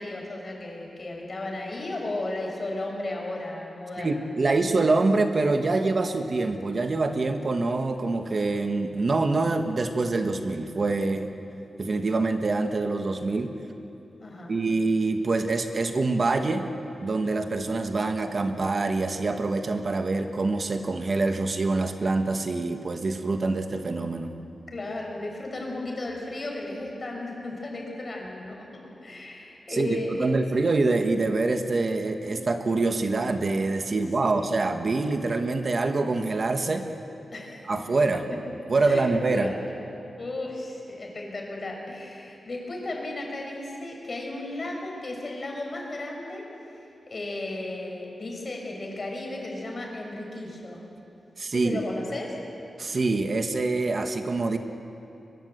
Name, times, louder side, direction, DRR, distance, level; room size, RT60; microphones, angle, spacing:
voice 1, 0.0-4.3 14.2-14.6 24.7-30.3 34.2-34.5 37.3-37.6 38.9-39.7 40.2-46.5 47.1-50.8 51.5-52.4, left 2 dB, 40° left, 0 dB, 5.8 m, -35 dB
voice 2, 4.0-11.3 11.8-13.5 14.5-16.7 17.0-24.3 29.7-36.9 37.7-38.2 38.7-39.5 51.4-51.8 52.8-54.6, right 3 dB, 45° right, 6 dB, 1.3 m, -25 dB
22.5 x 22.0 x 8.0 m, 2.8 s
wide cardioid pair, 105°, 0 cm